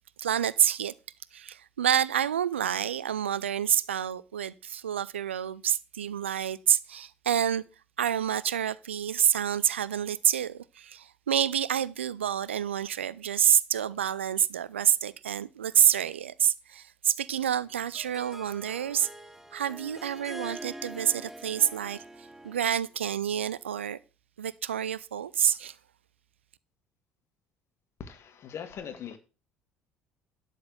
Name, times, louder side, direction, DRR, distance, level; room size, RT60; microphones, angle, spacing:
voice 1, 0.2-0.9 1.3-7.6 8.0-19.1 19.5-24.0 24.4-25.8, right 9 dB, 75° right, 0.4 m, -28 dB
Harp, 17.6-22.9, right 1 dB, 5° right, 0.9 m, -44 dB
voice 2, 28.0-29.2, left 7 dB, 45° left, 1.8 m, -40 dB
11.5 x 4.1 x 7.4 m
figure-of-eight pair, 55°, 6 cm